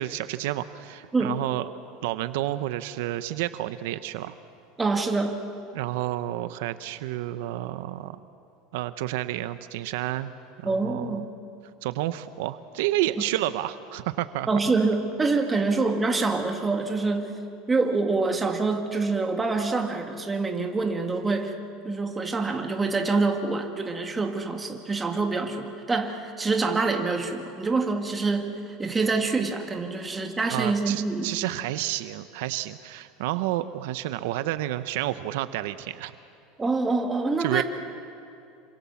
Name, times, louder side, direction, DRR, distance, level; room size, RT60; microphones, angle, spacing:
voice 1, 0.0-1.7 2.0-4.3 5.7-8.2 8.7-10.3 10.6-11.2 11.8-14.5 30.5-36.1 37.4-37.6, right 14 dB, 75° right, 12 dB, 0.8 m, -30 dB
voice 2, 4.8-5.4 10.6-11.3 14.5-17.3 17.7-21.6 21.8-31.3 36.6-37.6, right 3 dB, 15° right, 4 dB, 1.9 m, -26 dB
27.5 x 25.0 x 7.2 m, 2.6 s
supercardioid pair, 145°, 0 cm